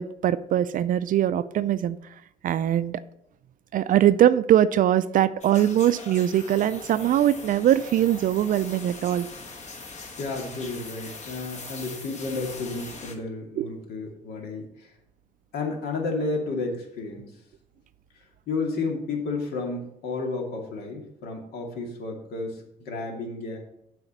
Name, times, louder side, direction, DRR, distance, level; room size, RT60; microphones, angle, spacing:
voice 1, 0.0-2.0 2.4-3.0 3.7-9.3 13.6-13.7, right 11 dB, 55° right, 13 dB, 0.4 m, -22 dB
sound 1, 5.4-13.2, left 3 dB, 45° left, 1.5 m, -41 dB
voice 2, 10.2-14.9 15.5-17.3 18.5-23.6, left 3 dB, 70° left, 2 dB, 2.4 m, -32 dB
7.9 x 5.0 x 7.4 m, 0.75 s
cardioid pair, 110°, 17 cm